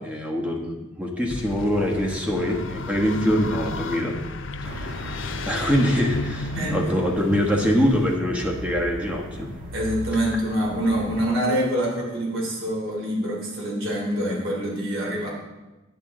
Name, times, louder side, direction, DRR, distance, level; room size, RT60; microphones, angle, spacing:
voice 1, 0.0-4.2 4.7-5.0 5.4-9.5, equal, 5° right, -1 dB, 1.2 m, -24 dB
sound 1, 1.3-8.2, left 3 dB, 65° left, 0.6 m, -34 dB
sound 2, 4.6-11.2, equal, 45° right, 1.3 m, -39 dB
voice 2, 9.7-15.3, equal, 75° right, -3 dB, 3.2 m, -25 dB
10.5 x 8.4 x 3.7 m, 1.1 s
head